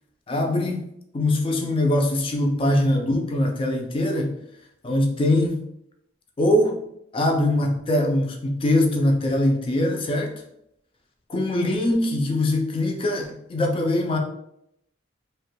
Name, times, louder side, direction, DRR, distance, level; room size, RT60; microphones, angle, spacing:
voice 1, 0.3-0.8 1.1-4.4 4.8-5.6 6.4-6.8 7.1-10.3 11.3-14.2, left 1 dB, 25° left, 3 dB, 0.3 m, -22 dB
2.8 x 2.2 x 3.0 m, 0.78 s
head